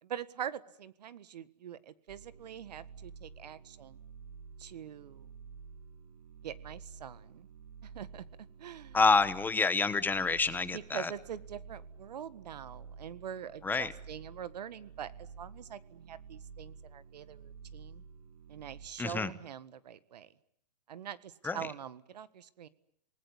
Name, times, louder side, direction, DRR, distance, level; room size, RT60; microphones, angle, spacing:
voice 1, 0.0-4.0 4.6-5.3 6.4-7.5 7.8-8.2 8.6-9.0 10.7-18.0 18.5-20.3 20.9-22.7, right 9 dB, 75° right, 15 dB, 1.7 m, -44 dB
sound 1, 2.1-18.9, right 5 dB, 55° right, 4.7 m, -51 dB
voice 2, 8.9-11.1 13.6-13.9 19.0-19.3 21.4-21.7, left 4 dB, 10° left, 14 dB, 1.1 m, -28 dB
28.0 x 19.5 x 9.8 m, 0.70 s
hypercardioid pair, 135°, 21 cm